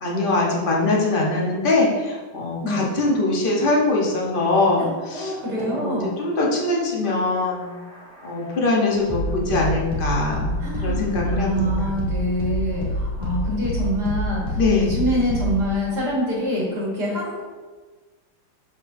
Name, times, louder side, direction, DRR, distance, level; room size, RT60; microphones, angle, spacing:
voice 1, 0.0-7.7 8.2-11.9 14.6-15.0, left 2 dB, 35° left, -2 dB, 0.9 m, -22 dB
voice 2, 2.6-2.9 4.8-6.1 10.6-17.4, equal, 55° right, -5 dB, 2.1 m, -26 dB
sound 1, 7.0-15.7, left 1 dB, 5° left, 1.2 m, -28 dB
6.5 x 5.7 x 2.7 m, 1.3 s
omnidirectional pair, 2.2 m